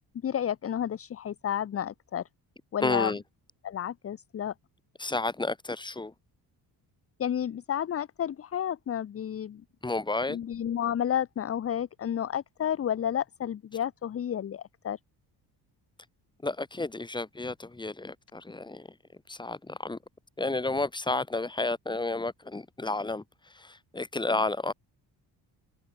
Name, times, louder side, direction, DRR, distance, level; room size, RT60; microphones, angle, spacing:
voice 1, 0.2-2.2 2.7-3.1 3.6-4.5 7.2-9.6 10.3-15.0, left 9 dB, 35° left, 1.0 m, -31 dB
voice 2, 2.8-3.2 5.0-6.1 9.8-10.4 16.4-18.9 19.3-20.0 20.4-24.7, left 2 dB, 10° left, 3.3 m, -31 dB
open air
cardioid pair, 155°, 40 cm